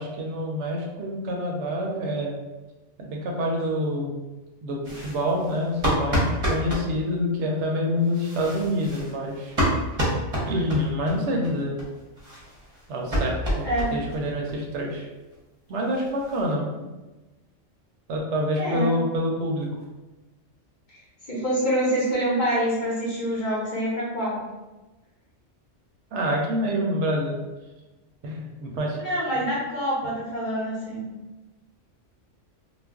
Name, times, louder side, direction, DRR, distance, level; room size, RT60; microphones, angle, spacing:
voice 1, 0.0-2.3 3.0-4.1 4.6-9.6 10.5-11.8 12.9-13.7 13.9-15.1 15.7-16.7 18.1-19.7 26.1-27.4 28.2-29.0, equal, 70° right, -1 dB, 0.8 m, -27 dB
sound 1, 4.8-6.9 8.0-11.1 11.4-11.5 11.8-11.9 12.2-14.2 14.5-14.6 14.9-15.0 15.3-15.4 15.7-16.5, equal, 35° right, 0.7 m, -28 dB
voice 2, 13.6-13.9 18.6-18.9 21.3-24.4 29.0-31.1, equal, 45° left, -6 dB, 0.7 m, -26 dB
2.4 x 2.1 x 3.4 m, 1.1 s
omnidirectional pair, 1.3 m